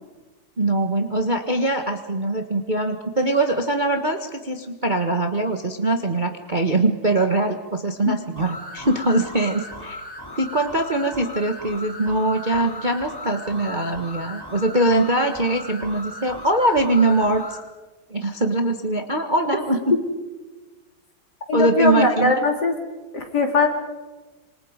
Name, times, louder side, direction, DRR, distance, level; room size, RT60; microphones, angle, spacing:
voice 1, 0.6-10.0 10.4-17.4 18.1-19.9 21.5-22.3, right 2 dB, 25° right, 5 dB, 1.4 m, -22 dB
sound 1, 8.4-17.6, left 1 dB, 10° left, 2.7 m, -37 dB
voice 2, 21.5-22.8 23.1-23.7, left 3 dB, 45° left, 3 dB, 3.7 m, -20 dB
27.5 x 26.0 x 5.2 m, 1.2 s
omnidirectional pair, 2.4 m